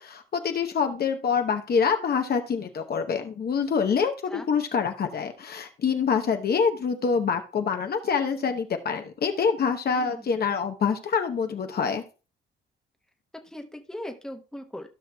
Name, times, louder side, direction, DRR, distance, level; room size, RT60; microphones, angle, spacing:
voice 1, 0.0-12.0, left 6 dB, 50° left, 6 dB, 1.0 m, -26 dB
voice 2, 9.9-10.3 13.4-14.9, left 1 dB, 5° left, 4 dB, 1.0 m, -39 dB
15.0 x 5.8 x 2.3 m, 0.33 s
cardioid pair, 90°, 20 cm